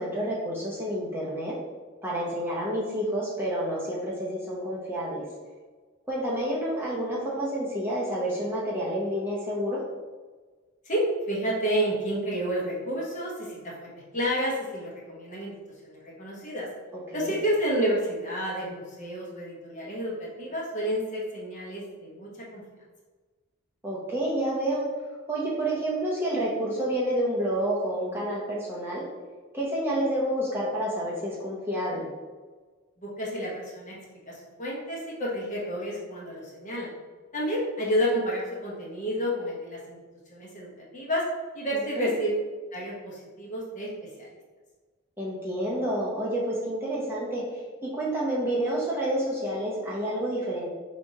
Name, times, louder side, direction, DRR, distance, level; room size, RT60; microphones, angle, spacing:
voice 1, 0.0-1.6 2.0-5.3 6.1-9.8 17.1-17.3 23.8-24.9 25.3-29.1 29.5-32.1 42.0-42.1 45.2-50.7, right 1 dB, 10° right, -6 dB, 0.7 m, -29 dB
voice 2, 10.8-15.5 15.8-16.7 17.1-22.6 33.0-34.0 34.3-37.0 37.3-40.0 40.3-41.3 41.5-42.3 42.7-44.3, equal, 35° left, -4 dB, 0.9 m, -30 dB
4.2 x 3.4 x 2.8 m, 1.4 s
head